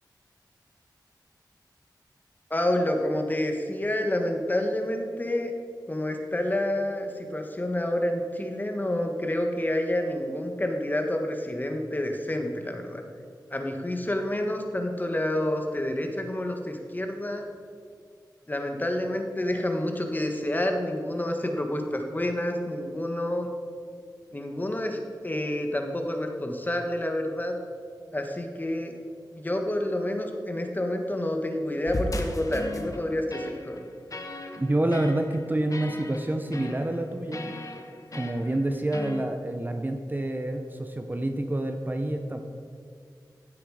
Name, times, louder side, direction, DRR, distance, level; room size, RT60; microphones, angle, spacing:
voice 1, 2.5-5.5 5.9-13.0 13.5-17.4 18.5-23.5 24.3-27.6 28.1-28.9 29.3-33.8, left 1 dB, 25° left, 4 dB, 1.4 m, -28 dB
sound 1, 31.9-39.2, left 2 dB, 50° left, 1.2 m, -37 dB
voice 2, 34.6-37.5 38.1-42.4, right 1 dB, 25° right, 5 dB, 0.8 m, -28 dB
15.5 x 7.7 x 4.9 m, 2.2 s
wide cardioid pair, 85°, 8 cm